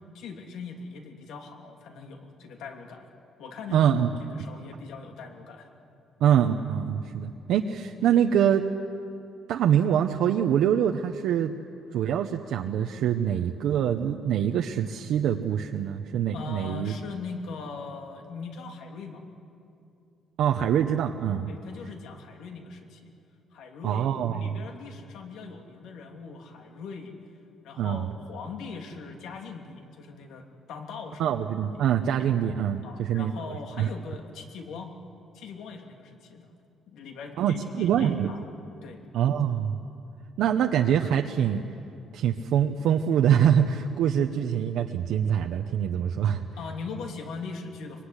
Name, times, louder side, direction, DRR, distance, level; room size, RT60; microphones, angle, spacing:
voice 1, 0.1-3.1 3.4-3.9 4.2-5.7 16.3-19.2 21.5-23.1 23.5-27.1 27.6-31.4 31.7-31.9 32.8-34.9 35.3-36.5 36.9-38.4 38.8-39.0 46.6-48.0, left 5 dB, 75° left, 3 dB, 3.0 m, -40 dB
voice 2, 3.7-4.1 6.2-8.6 9.5-11.5 11.9-16.9 20.4-21.5 23.8-24.6 27.8-28.1 31.2-33.3 33.8-33.9 37.4-38.3 39.1-39.8 40.4-41.6 42.1-46.4, right 9 dB, 70° right, 3 dB, 1.0 m, -24 dB
24.5 x 23.5 x 10.0 m, 2.6 s
cardioid pair, 170°, 0 cm